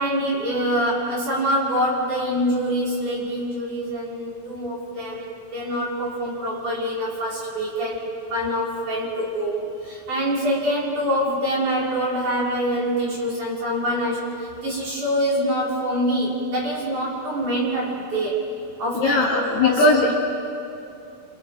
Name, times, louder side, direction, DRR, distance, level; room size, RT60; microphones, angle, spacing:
voice 1, 0.0-18.5 18.8-20.1, equal, 40° right, -5 dB, 5.3 m, -25 dB
voice 2, 18.9-20.1, left 2 dB, 60° left, -2 dB, 3.5 m, -19 dB
28.0 x 27.0 x 4.7 m, 2.6 s
omnidirectional pair, 5.8 m